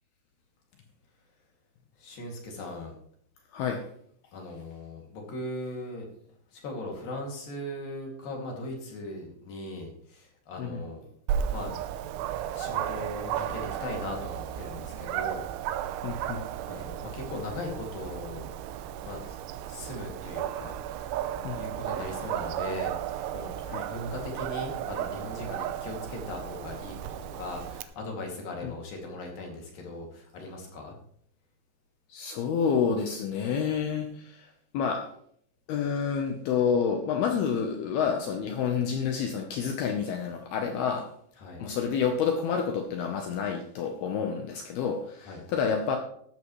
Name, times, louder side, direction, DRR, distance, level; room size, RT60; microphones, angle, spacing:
voice 1, 2.0-3.0 4.3-6.1 6.5-11.1 11.5-11.7 12.5-16.3 16.6-18.5 19.0-19.4 19.7-21.1 21.6-23.5 23.8-30.9 41.4-41.6 45.2-45.4, left 2 dB, 55° left, 0 dB, 4.0 m, -39 dB
voice 2, 3.5-3.9 10.6-10.8 16.0-16.4 21.4-21.6 23.7-23.9 28.6-28.7 32.1-34.5 34.7-35.1 35.7-41.1 41.6-46.0, left 6 dB, 70° left, 4 dB, 2.6 m, -29 dB
Dog, 11.3-27.8, right 10 dB, 85° right, 3.1 m, -34 dB
14.0 x 12.5 x 3.2 m, 0.65 s
omnidirectional pair, 5.4 m